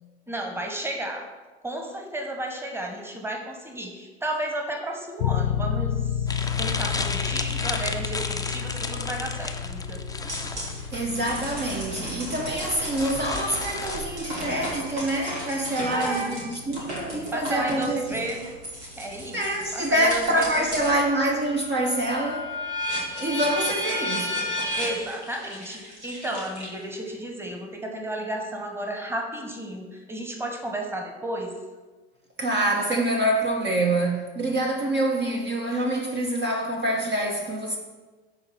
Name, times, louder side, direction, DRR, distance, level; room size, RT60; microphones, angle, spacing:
voice 1, 0.3-1.2 1.6-10.0 15.9-16.4 17.3-18.5 18.8-19.4 19.7-20.8 24.7-31.5, right 1 dB, 5° right, 1.5 m, -33 dB
sound 1, 5.2-19.6, left 8 dB, 75° left, 0.5 m, -33 dB
sound 2, 6.3-14.0, left 3 dB, 10° left, 0.7 m, -34 dB
sound 3, 10.3-21.0 21.4-27.1, equal, 90° right, 2.4 m, -34 dB
voice 2, 10.9-18.2 19.3-22.5 23.2-24.4 32.4-37.8, right 1 dB, 30° right, 1.2 m, -26 dB
11.5 x 4.0 x 4.5 m
hypercardioid pair, 75°, 33 cm